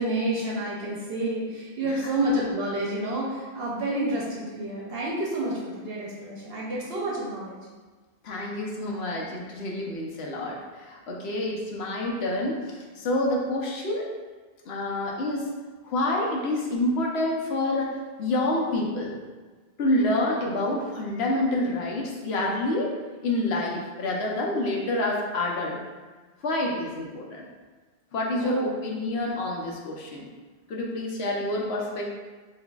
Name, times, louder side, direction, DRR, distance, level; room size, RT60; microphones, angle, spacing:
voice 1, 0.0-7.6 28.4-28.7 30.2-30.3, right 1 dB, 65° right, -4 dB, 0.9 m, -29 dB
voice 2, 8.2-14.1 14.7-15.5 15.8-17.9 18.2-19.1 19.8-22.9 23.2-25.8 26.4-27.5 28.1-30.3 30.7-32.1, left 1 dB, 80° left, -2 dB, 1.0 m, -28 dB
5.8 x 2.6 x 2.3 m, 1.3 s
omnidirectional pair, 1.1 m